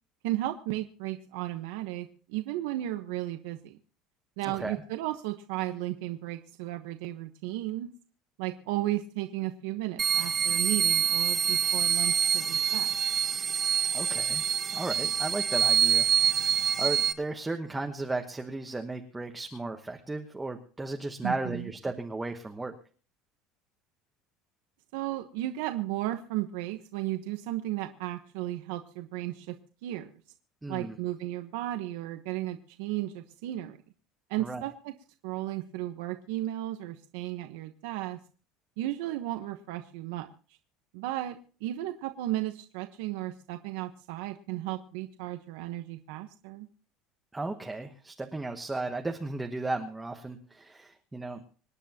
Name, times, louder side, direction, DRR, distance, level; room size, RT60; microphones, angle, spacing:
voice 1, 0.2-3.8 4.4-7.9 8.4-12.9 21.2-21.7 24.9-29.6 29.8-30.1 30.7-33.8 34.3-34.9 35.2-38.2 38.8-40.3 40.9-46.7, right 15 dB, 85° right, 7 dB, 1.1 m, -34 dB
voice 2, 4.4-4.8 13.8-14.4 14.7-22.7 30.6-31.0 34.4-34.6 47.3-51.5, right 2 dB, 10° right, 3 dB, 1.1 m, -35 dB
sound 1, 10.0-17.1, right 8 dB, 25° right, 1.6 m, -26 dB
26.5 x 10.0 x 2.9 m, 0.39 s
cardioid pair, 155°, 0 cm